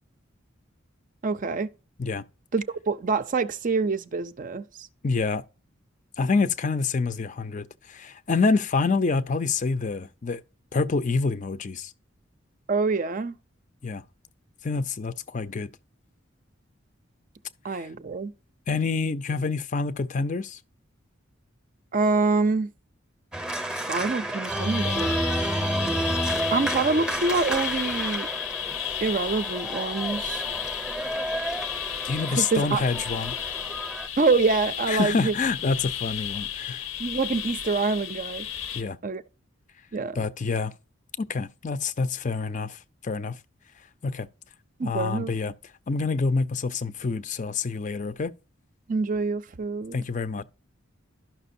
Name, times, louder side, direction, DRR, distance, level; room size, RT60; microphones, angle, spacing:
voice 1, 1.2-1.7 2.5-4.9 12.7-13.4 17.6-18.3 21.9-22.7 23.7-25.1 26.5-28.3 29.0-30.4 32.4-32.8 34.2-35.3 37.0-38.5 39.0-39.2 39.9-40.2 44.8-45.3 48.9-50.0, right 4 dB, 40° right, 0.5 m, -26 dB
voice 2, 5.0-5.4 6.2-10.4 10.7-11.9 13.8-14.0 14.6-15.7 17.7-17.9 18.7-20.6 32.0-33.3 34.9-36.9 38.7-39.0 40.1-40.7 41.2-43.4 44.0-44.3 44.8-45.5 45.9-48.3 49.9-50.4, left 4 dB, 40° left, 0.5 m, -27 dB
Organ, 23.3-34.1, right 1 dB, 5° right, 0.7 m, -31 dB
sound 1, 24.5-38.8, left 10 dB, 90° left, 0.9 m, -33 dB
12.0 x 5.9 x 2.7 m
head